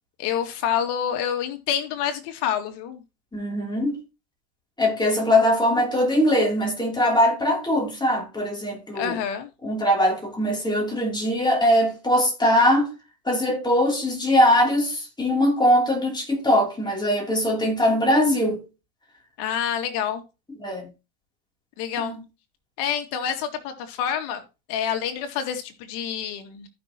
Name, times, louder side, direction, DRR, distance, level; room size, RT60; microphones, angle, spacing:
voice 1, 0.2-3.0 8.9-9.5 19.4-20.2 21.8-22.2 22.8-24.4 24.7-26.7, left 9 dB, 60° left, 2.3 m, -27 dB
voice 2, 3.3-4.0 4.8-9.2 9.6-12.9 13.2-18.7 20.6-20.9 22.0-22.2, left 1 dB, 10° left, 3.2 m, -21 dB
14.5 x 6.1 x 3.0 m
supercardioid pair, 125°, 45 cm